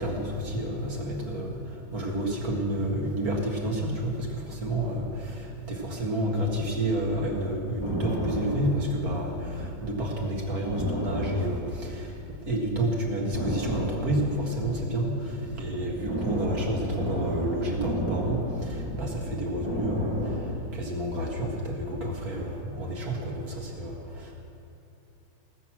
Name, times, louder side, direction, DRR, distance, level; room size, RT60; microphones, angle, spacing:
voice 1, 0.0-24.3, right 1 dB, 50° right, -1 dB, 2.4 m, -30 dB
sound 1, 7.7-9.9 10.2-10.3 10.7-12.4 12.7-12.9 13.3-20.6, equal, 20° right, 2.0 m, -33 dB
19.0 x 8.2 x 6.1 m, 2.9 s
omnidirectional pair, 2.0 m